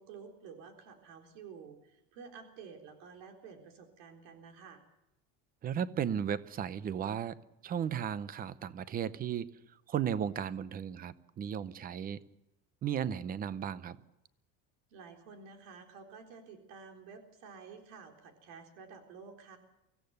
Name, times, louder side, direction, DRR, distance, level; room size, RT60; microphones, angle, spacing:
voice 1, 0.0-4.8 14.9-19.6, right 5 dB, 85° right, 4 dB, 4.0 m, -51 dB
voice 2, 5.6-7.4 7.6-9.5 9.9-12.2 12.8-14.0, right 8 dB, 25° right, 16 dB, 0.7 m, -35 dB
24.5 x 16.5 x 6.7 m, 0.90 s
cardioid pair, 175°, 37 cm